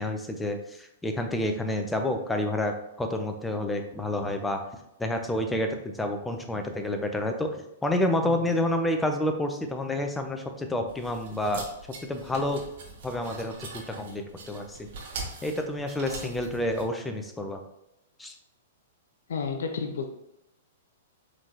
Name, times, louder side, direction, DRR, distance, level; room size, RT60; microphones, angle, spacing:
voice 1, 0.0-2.7 3.0-4.6 5.0-7.6 7.8-11.7 12.0-12.6 13.0-14.9 15.4-17.6 18.2-18.3, left 1 dB, 5° left, 4 dB, 0.6 m, -29 dB
voice 2, 8.2-8.6 16.2-16.3 19.3-20.1, left 5 dB, 70° left, 5 dB, 0.5 m, -32 dB
sound 1, 10.9-16.8, right 3 dB, 60° right, 1.1 m, -42 dB
4.8 x 3.6 x 2.9 m, 0.86 s
hypercardioid pair, 115°, 0 cm